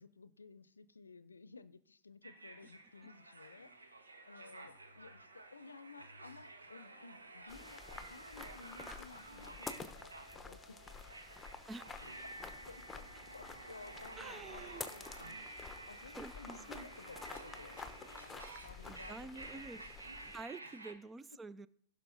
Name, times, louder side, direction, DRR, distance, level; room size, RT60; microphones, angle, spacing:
voice 1, 0.0-3.7 4.2-7.8 8.1-10.8 12.4-13.0 13.3-17.9 18.2-19.7, left 4 dB, 85° left, 16 dB, 0.6 m, -56 dB
sound 1, 2.2-20.9, right 2 dB, 85° right, 1.5 m, -52 dB
sound 2, 7.5-20.4, left 4 dB, 10° left, 0.9 m, -50 dB
voice 2, 11.7-12.0 14.2-14.8 16.2-16.9 18.9-19.8 20.3-21.7, right 3 dB, 15° right, 17 dB, 0.5 m, -48 dB
16.0 x 6.1 x 3.9 m, 0.64 s
figure-of-eight pair, 105°, 0 cm